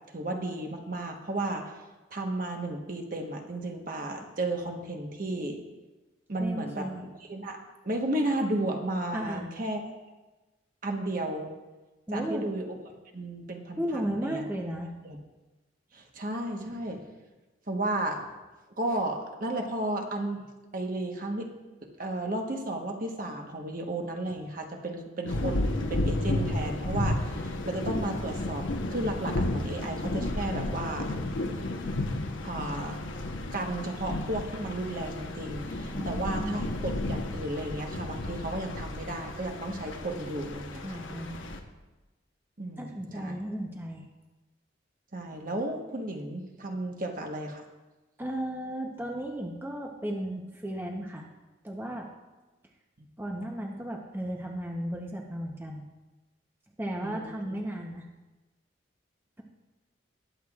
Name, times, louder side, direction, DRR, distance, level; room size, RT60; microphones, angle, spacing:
voice 1, 0.1-1.7 2.1-5.6 6.3-6.9 7.3-9.8 10.8-11.5 12.1-12.7 13.1-14.4 15.0-15.2 15.9-17.0 17.7-18.3 18.8-20.5 20.7-21.5 21.8-31.1 32.4-33.0 33.5-36.6 37.1-41.0 42.6-43.3 45.1-47.6 53.0-53.1 57.0-57.6, right 1 dB, 45° right, 2 dB, 1.2 m, -33 dB
voice 2, 6.4-7.0 9.1-9.5 12.1-12.5 13.8-14.9 35.9-36.7 40.8-41.4 42.8-44.1 48.2-51.3 51.6-52.1 53.2-55.8 56.8-58.1, right 1 dB, 10° right, 0 dB, 0.8 m, -34 dB
sound 1, 25.3-41.6, left 1 dB, 85° left, 1.0 m, -32 dB
20.5 x 7.9 x 2.4 m, 1.1 s
head